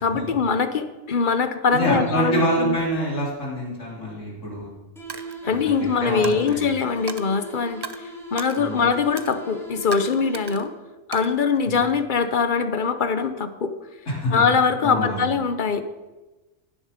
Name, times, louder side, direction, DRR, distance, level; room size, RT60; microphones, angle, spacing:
voice 1, 0.0-2.8 5.4-10.7 11.1-13.7 14.3-15.8, left 5 dB, 45° left, 10 dB, 0.8 m, -22 dB
voice 2, 1.7-4.7 5.4-5.7 6.0-6.7 8.6-8.8 11.6-11.8 14.1-14.4 14.8-15.3, equal, 80° left, -5 dB, 3.6 m, -26 dB
sound 1, 5.0-10.9, equal, ahead, 1.9 m, -39 dB
Coin (dropping), 5.1-5.4 6.2-6.6 7.1-7.3 7.8-8.0 8.4-8.6 9.2-9.4 9.9-10.7 11.1-12.0, right 4 dB, 35° right, 0.4 m, -36 dB
17.0 x 7.3 x 5.0 m, 1.1 s
omnidirectional pair, 1.3 m